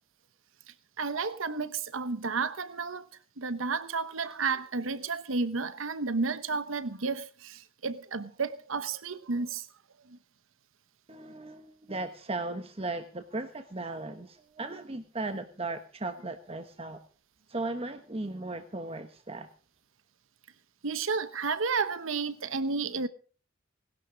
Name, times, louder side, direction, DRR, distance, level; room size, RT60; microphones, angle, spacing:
voice 1, 1.0-3.1 3.4-9.7 10.1-10.2 20.8-23.1, right 4 dB, 75° right, 1.0 m, -32 dB
voice 2, 11.1-17.0 17.5-19.5, right 2 dB, 30° right, 1.2 m, -37 dB
20.0 x 12.0 x 5.2 m
head